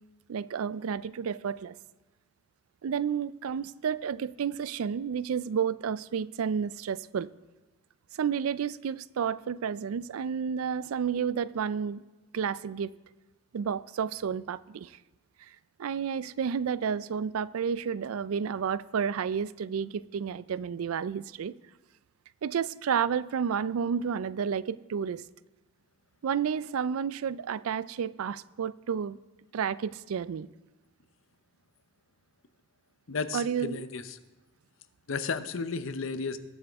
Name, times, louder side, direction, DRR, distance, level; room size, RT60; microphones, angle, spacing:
voice 1, 0.3-1.8 2.8-7.3 8.1-12.0 12.3-12.9 13.5-15.0 15.8-21.5 22.4-25.2 26.2-29.2 29.5-30.5 33.3-33.8, right 7 dB, 90° right, 18 dB, 0.4 m, -31 dB
voice 2, 33.1-34.2 35.1-36.4, left 4 dB, 70° left, 11 dB, 0.7 m, -33 dB
20.0 x 7.7 x 3.5 m, 1.2 s
head